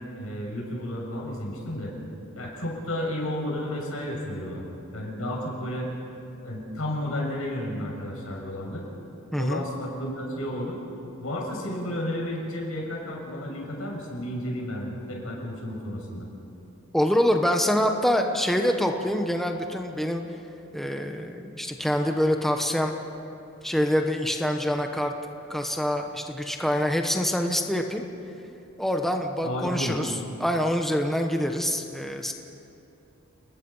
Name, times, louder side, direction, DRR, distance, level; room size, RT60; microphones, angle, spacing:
voice 1, 0.0-1.9 2.3-4.6 4.9-5.9 6.4-8.8 9.4-10.8 11.2-16.3 29.4-30.0, left 1 dB, 85° left, -1 dB, 6.7 m, -32 dB
voice 2, 9.3-9.6 16.9-20.2 20.7-22.9 23.6-25.1 25.5-28.0 28.8-32.3, equal, ahead, 3 dB, 1.1 m, -25 dB
29.5 x 21.0 x 5.6 m, 2.8 s
head